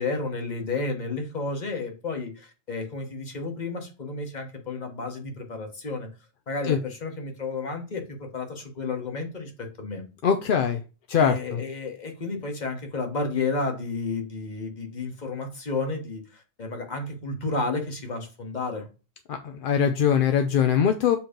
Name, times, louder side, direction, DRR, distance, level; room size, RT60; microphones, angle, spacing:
voice 1, 0.0-6.1 6.5-10.0 11.2-18.9, left 3 dB, 35° left, 3 dB, 1.3 m, -32 dB
voice 2, 10.2-10.8 11.1-11.6 19.3-19.4 19.6-21.2, left 7 dB, 60° left, 7 dB, 0.6 m, -22 dB
7.0 x 3.1 x 5.0 m, 0.33 s
omnidirectional pair, 1.3 m